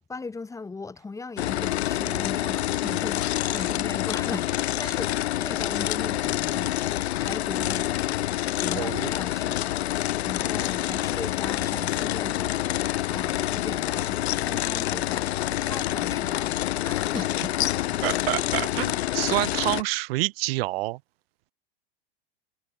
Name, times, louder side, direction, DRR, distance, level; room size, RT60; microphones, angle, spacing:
voice 1, 0.1-6.7 7.2-8.0 8.5-12.7 13.0-15.3 15.6-17.6, left 4 dB, 10° left, 1.3 m, -38 dB
sound 1, 1.4-19.8, left 14 dB, 80° left, 1.8 m, -27 dB
voice 2, 8.8-9.1 18.0-21.0, right 20 dB, 65° right, 0.5 m, -28 dB
supercardioid pair, 125°, 32 cm